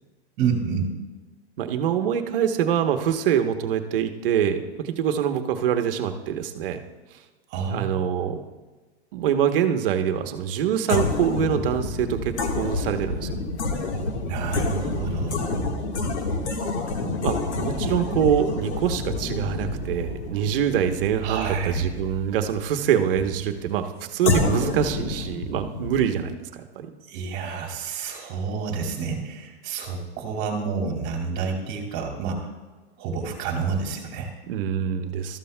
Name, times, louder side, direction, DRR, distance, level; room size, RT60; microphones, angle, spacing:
voice 1, 0.4-0.9 7.5-8.0 14.2-15.4 21.2-21.9 27.1-32.5 33.0-34.3, right 5 dB, 30° right, 2 dB, 2.1 m, -29 dB
voice 2, 1.6-6.8 7.7-8.4 9.1-13.4 17.2-26.9 34.5-35.4, right 9 dB, 55° right, 6 dB, 1.0 m, -25 dB
sound 1, 10.9-22.7 24.3-26.4, left 3 dB, 85° left, 1.6 m, -28 dB
sound 2, 11.7-23.7, right 5 dB, 15° right, 2.3 m, -40 dB
13.0 x 13.0 x 2.2 m, 1.3 s
supercardioid pair, 165°, 33 cm